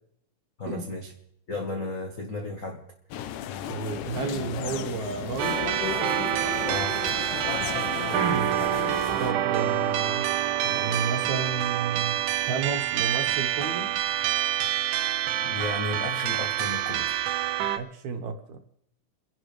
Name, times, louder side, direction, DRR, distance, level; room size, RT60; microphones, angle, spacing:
voice 1, 0.6-1.1 1.5-2.8 6.7-7.0 15.4-17.2, left 2 dB, 65° left, 2 dB, 0.8 m, -34 dB
sound 1, 3.1-9.3, left 10 dB, 80° left, 2.2 m, -34 dB
voice 2, 3.7-5.7 8.2-8.5 9.2-10.3 10.6-12.2 12.5-13.9 17.8-18.7, right 5 dB, 65° right, 5 dB, 2.6 m, -32 dB
sound 2, 5.4-17.8, right 12 dB, 80° right, 2.3 m, -27 dB
30.0 x 11.0 x 3.3 m, 0.78 s
omnidirectional pair, 3.7 m